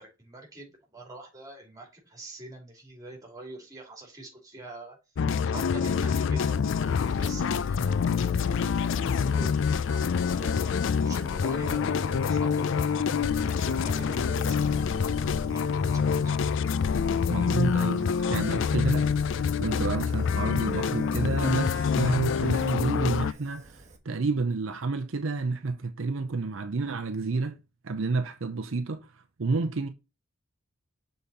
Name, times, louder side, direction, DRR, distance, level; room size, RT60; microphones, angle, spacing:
voice 1, 0.0-5.0 5.4-15.0 15.3-16.4, right 1 dB, 15° right, 2.7 m, -45 dB
sound 1, 5.2-23.3, left 6 dB, 65° left, 0.4 m, -26 dB
Fire, 6.5-24.0, right 2 dB, 35° right, 1.3 m, -53 dB
sound 2, 11.6-16.6, left 1 dB, 5° left, 2.5 m, -38 dB
voice 2, 17.3-19.1 19.6-27.6 27.8-29.9, right 3 dB, 70° right, 0.6 m, -30 dB
6.9 x 3.9 x 4.1 m
head